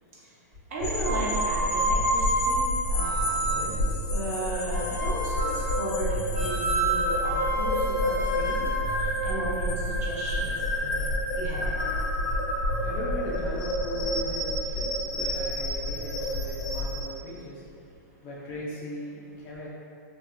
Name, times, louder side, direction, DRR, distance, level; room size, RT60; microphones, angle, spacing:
voice 1, 0.7-3.8 4.1-8.6 9.0-11.1 11.4-11.7, right 2 dB, 50° right, -6 dB, 0.7 m, -35 dB
sound 1, 0.8-17.0, left 1 dB, 45° left, 0.7 m, -29 dB
sound 2, 1.0-3.8 4.7-5.7 6.3-10.3, right 1 dB, 80° right, 0.9 m, -29 dB
voice 2, 12.3-19.7, equal, 25° left, -6 dB, 0.4 m, -39 dB
2.7 x 2.2 x 2.4 m, 2.5 s
hypercardioid pair, 160°, 10 cm